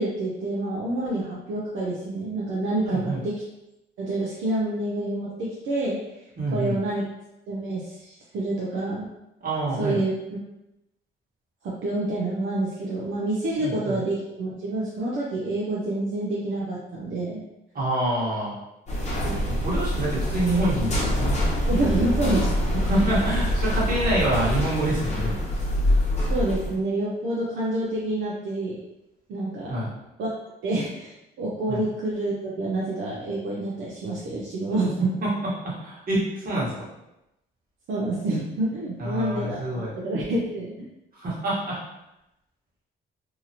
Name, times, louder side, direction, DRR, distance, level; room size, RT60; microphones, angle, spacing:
voice 1, 0.0-3.4 4.0-6.0 6.5-7.0 7.5-9.1 9.8-10.1 11.8-17.4 21.7-23.1 26.3-28.8 29.3-29.8 30.2-30.3 30.6-35.1 37.9-40.7, right 2 dB, 75° right, -5 dB, 0.6 m, -28 dB
voice 2, 2.8-3.2 6.4-6.7 9.4-10.0 13.6-14.0 17.7-18.5 19.2-21.4 22.8-25.3 29.7-29.9 31.7-31.8 35.2-36.9 39.0-40.0 41.2-41.8, right 1 dB, 45° right, -7 dB, 1.4 m, -26 dB
sound 1, 18.9-26.7, equal, 35° left, 0.9 m, -25 dB
2.8 x 2.4 x 2.8 m, 0.91 s
cardioid pair, 90°, 20 cm